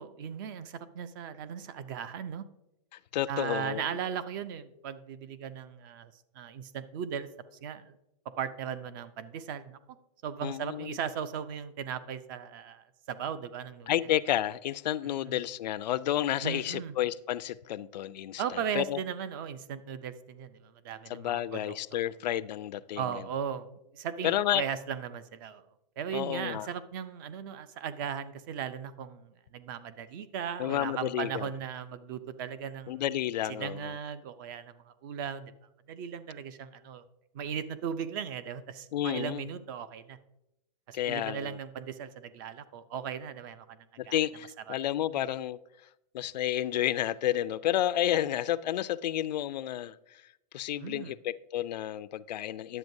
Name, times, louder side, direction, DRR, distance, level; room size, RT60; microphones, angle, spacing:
voice 1, 0.0-2.4 3.3-7.3 7.6-8.0 8.4-9.8 10.2-13.9 16.4-16.9 18.4-21.7 23.0-23.7 23.9-25.6 26.0-33.0 33.5-35.5 35.9-37.0 37.3-40.2 40.9-43.8 44.1-44.2 44.7-44.8 45.1-45.2 50.8-51.1, right 8 dB, 30° right, 0.4 m, -37 dB
voice 2, 3.1-4.0 10.4-11.0 13.9-19.0 21.1-23.2 24.2-24.6 26.1-26.7 30.6-31.5 32.9-34.0 38.9-39.4 40.9-41.6 44.0-45.6 46.1-50.2 50.5-52.8, left 12 dB, 85° left, 0.4 m, -31 dB
11.0 x 7.8 x 2.6 m
supercardioid pair, 160°, 21 cm